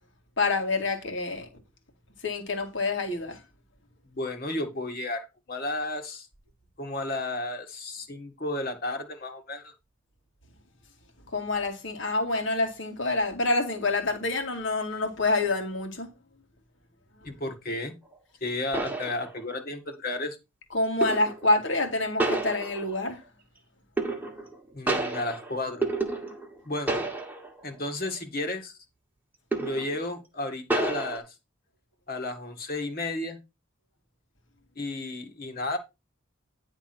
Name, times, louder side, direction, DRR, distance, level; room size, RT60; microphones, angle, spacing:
voice 1, 0.4-1.5 2.2-3.4 11.3-16.1 20.7-23.2, left 2 dB, 65° left, 2.1 m, -27 dB
voice 2, 4.1-6.3 6.8-9.7 17.2-17.9 18.4-20.4 24.7-25.8 26.7-27.0 27.6-28.8 29.6-31.2 32.1-33.4 34.8-35.8, left 2 dB, 45° left, 1.9 m, -33 dB
sound 1, 18.1-18.2 18.7-19.7 21.0-21.5 22.2-23.1 24.0-24.6 24.9-26.6 26.9-27.6 28.0-28.2 29.5-30.0 30.7-31.2, right 2 dB, 10° right, 1.4 m, -30 dB
10.0 x 3.7 x 5.9 m
head